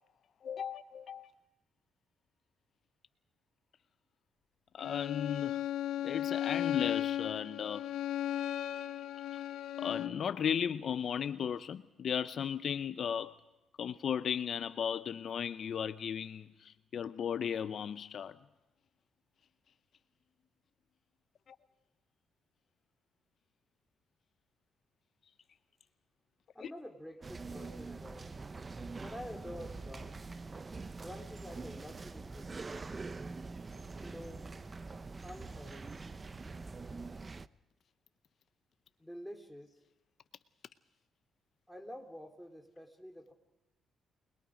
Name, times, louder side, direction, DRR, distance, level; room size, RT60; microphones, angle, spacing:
voice 1, 0.4-1.3 4.7-5.6 6.0-7.8 9.3-9.4 9.8-13.3 13.8-18.4 21.5-21.6 26.6-26.7, left 8 dB, 55° left, 0.7 m, -36 dB
Bowed string instrument, 4.8-10.3, left 12 dB, 85° left, 1.1 m, -35 dB
voice 2, 26.5-28.6 29.0-30.3 31.0-33.2 34.0-34.5 35.2-36.0 39.0-39.8 41.7-43.3, equal, ahead, 3.7 m, -48 dB
sound 1, 27.2-37.5, right 3 dB, 30° right, 0.8 m, -44 dB
29.5 x 21.5 x 5.1 m
cardioid pair, 90°, 0 cm